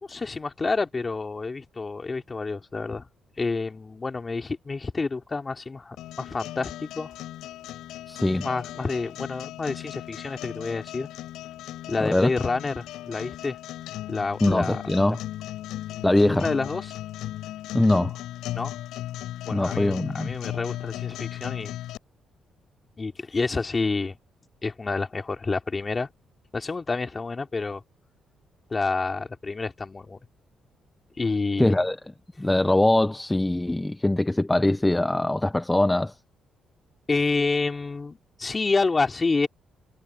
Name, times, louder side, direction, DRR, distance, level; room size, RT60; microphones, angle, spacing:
voice 1, 0.0-3.1 3.4-7.1 8.3-11.1 11.9-13.6 14.1-14.8 15.9-16.9 18.5-18.8 19.4-21.8 23.0-24.2 24.6-26.1 26.5-27.8 28.7-30.2 31.2-31.8 37.1-39.5, left 3 dB, 30° left, 2.9 m, -29 dB
sound 1, 6.0-22.0, left 14 dB, 85° left, 7.9 m, -36 dB
voice 2, 8.1-8.5 12.0-12.3 14.4-15.2 16.0-16.5 17.7-18.1 19.5-20.3 31.6-32.0 32.4-36.1, left 1 dB, 10° left, 0.7 m, -22 dB
cardioid pair, 90°, 0 cm